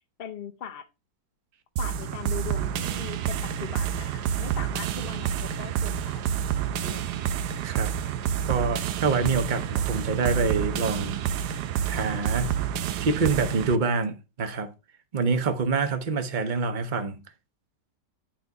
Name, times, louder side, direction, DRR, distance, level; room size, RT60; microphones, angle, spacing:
voice 1, 0.2-0.9 1.8-6.3 6.7-7.1, left 8 dB, 50° left, 0.7 m, -40 dB
sound 1, 1.8-13.8, right 9 dB, 75° right, 1.2 m, -29 dB
voice 2, 7.6-7.9 8.4-11.2 11.9-12.6 13.0-14.7 15.1-17.2, right 4 dB, 35° right, 0.9 m, -26 dB
10.5 x 4.1 x 4.7 m
omnidirectional pair, 1.9 m